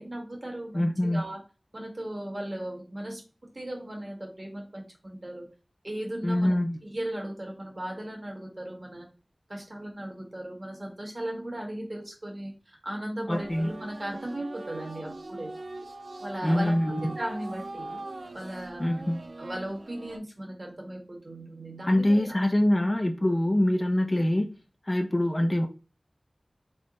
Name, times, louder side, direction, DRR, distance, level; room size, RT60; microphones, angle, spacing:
voice 1, 0.0-1.4 1.7-5.5 5.8-6.5 6.8-9.1 9.5-15.5 16.2-18.0 18.3-19.0 19.4-22.4, right 1 dB, 45° right, 1.2 m, -37 dB
voice 2, 0.7-1.2 6.2-6.8 13.3-13.7 16.4-17.2 18.8-19.2 21.9-24.5 24.9-25.7, left 1 dB, 35° left, 0.4 m, -24 dB
sound 1, 13.3-20.2, right 2 dB, 80° right, 0.4 m, -41 dB
3.4 x 2.1 x 3.8 m
wide cardioid pair, 60°, 0 cm